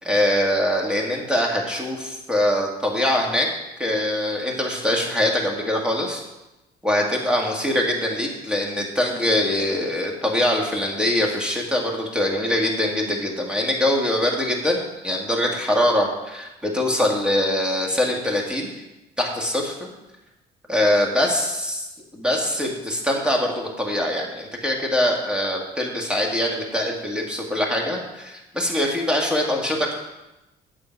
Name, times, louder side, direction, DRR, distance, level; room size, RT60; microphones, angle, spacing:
voice 1, 0.0-3.5 3.8-6.2 6.8-18.7 19.2-19.9 20.7-21.9 22.1-30.0, left 1 dB, 5° right, 0 dB, 2.0 m, -23 dB
8.7 x 7.4 x 4.6 m, 0.97 s
cardioid pair, 110°, 17 cm